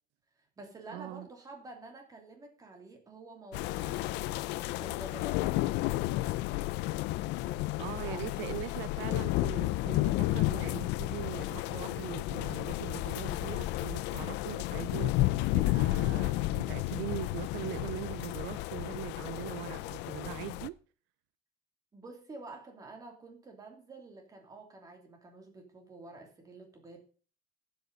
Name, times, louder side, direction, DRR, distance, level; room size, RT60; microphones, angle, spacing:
voice 1, 0.4-4.5 4.8-5.4 7.4-8.3 21.9-27.0, right 2 dB, 20° right, 2.8 m, -49 dB
voice 2, 0.9-1.3 7.8-20.8, right 18 dB, 80° right, 0.4 m, -41 dB
sound 1, 3.5-20.7, left 18 dB, 70° left, 0.5 m, -32 dB
17.0 x 8.1 x 4.0 m
cardioid pair, 165°, 19 cm